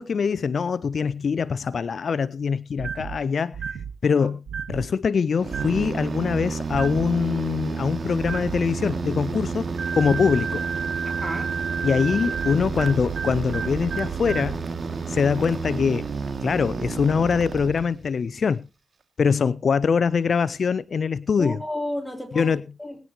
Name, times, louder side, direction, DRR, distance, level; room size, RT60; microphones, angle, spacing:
voice 1, 0.0-3.6 4.0-4.4 4.7-9.7 10.0-10.7 11.8-14.6 15.1-16.0 16.4-18.7 19.2-21.6 22.4-22.6, left 6 dB, 65° left, 0.5 m, -23 dB
sound 1, 2.8-3.1 3.5-3.9 4.5-4.8 5.5-5.9 6.7-7.1 8.2-8.6 9.8-14.6, right 6 dB, 75° right, 2.2 m, -31 dB
sound 2, 5.4-18.2, right 4 dB, 60° right, 2.3 m, -31 dB
voice 2, 11.2-11.5 21.4-23.0, left 1 dB, 10° left, 4.3 m, -32 dB
21.0 x 9.6 x 3.0 m
supercardioid pair, 45°, 0 cm